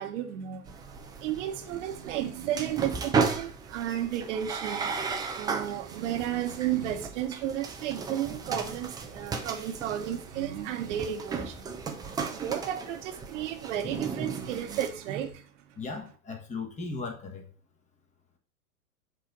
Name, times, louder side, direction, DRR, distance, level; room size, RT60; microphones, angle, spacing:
voice 1, 0.0-4.9 5.3-11.7 12.3-15.8, right 11 dB, 55° right, 1.2 m, -33 dB
sound 1, 0.7-14.9, right 5 dB, 10° right, 0.5 m, -35 dB
voice 2, 15.7-17.5, left 4 dB, 15° left, 1.4 m, -37 dB
7.6 x 3.4 x 4.0 m
hypercardioid pair, 110°, 44 cm